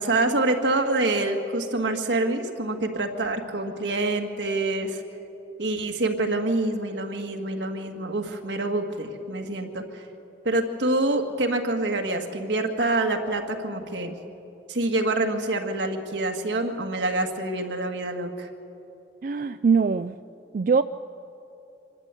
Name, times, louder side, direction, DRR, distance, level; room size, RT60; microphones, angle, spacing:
voice 1, 0.0-5.0 5.6-10.0 10.5-14.2 14.7-18.5, right 2 dB, 85° right, 4 dB, 1.8 m, -26 dB
voice 2, 19.2-20.2 20.5-20.8, right 5 dB, 50° right, 11 dB, 0.3 m, -22 dB
26.0 x 12.5 x 8.3 m, 3.0 s
head